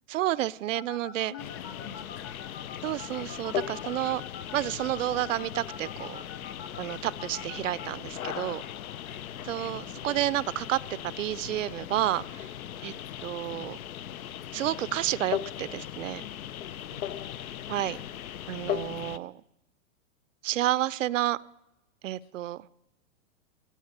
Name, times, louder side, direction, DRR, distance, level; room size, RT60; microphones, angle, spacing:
voice 1, 0.1-1.3 2.8-4.2 4.5-6.2 6.8-8.6 9.4-12.5 12.8-12.9 13.2-13.8 14.5-16.3 17.7-18.0 18.5-19.3 20.4-21.4 22.0-22.7, right 14 dB, 65° right, 0.5 m, -30 dB
sound 1, 0.7-7.9, left 7 dB, 20° left, 0.7 m, -44 dB
voice 2, 1.3-2.3 9.0-9.3 12.7-13.1 16.8-17.3 17.5-17.8 22.2-22.3, left 7 dB, 45° left, 2.4 m, -48 dB
sound 2, 1.4-19.2, left 11 dB, 90° left, 0.8 m, -38 dB
16.5 x 10.0 x 8.0 m
hypercardioid pair, 160°, 41 cm